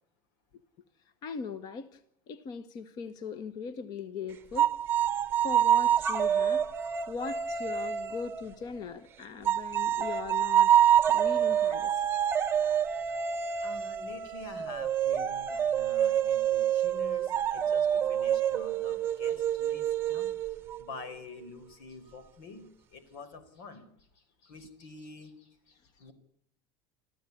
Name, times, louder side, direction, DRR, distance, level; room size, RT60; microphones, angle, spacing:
voice 1, 1.2-2.0 2.3-4.7 5.4-6.7 7.1-12.1, left 5 dB, 35° left, 1.3 m, -40 dB
sound 1, 4.6-8.9 9.4-20.8, right 9 dB, 20° right, 0.9 m, -27 dB
voice 2, 13.6-20.3 20.8-23.9 24.1-26.1, left 3 dB, 85° left, 4.8 m, -47 dB
27.0 x 15.0 x 8.6 m
cardioid pair, 175°, 11 cm